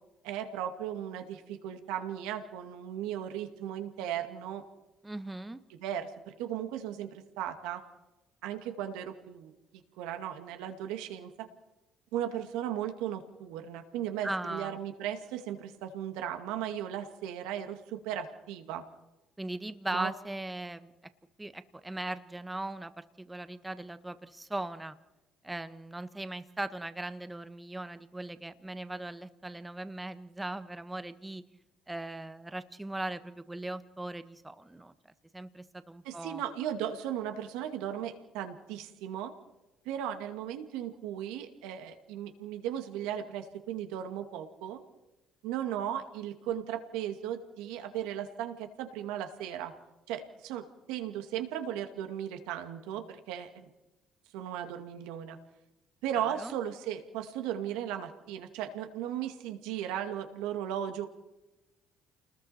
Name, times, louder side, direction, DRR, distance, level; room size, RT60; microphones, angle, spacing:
voice 1, 0.2-4.6 5.7-7.8 8.4-9.5 10.0-11.5 12.1-18.8 19.9-20.1 36.0-39.3 39.9-44.8 45.4-49.7 50.1-53.7 54.3-55.4 56.0-61.1, right 10 dB, 80° right, 6 dB, 2.2 m, -36 dB
voice 2, 5.0-5.6 14.2-14.8 19.4-20.9 21.4-25.0 25.4-31.4 31.9-34.9 35.3-36.4 56.1-56.5, right 2 dB, 15° right, 11 dB, 1.5 m, -39 dB
29.5 x 20.5 x 4.4 m, 1.0 s
supercardioid pair, 65°, 0 cm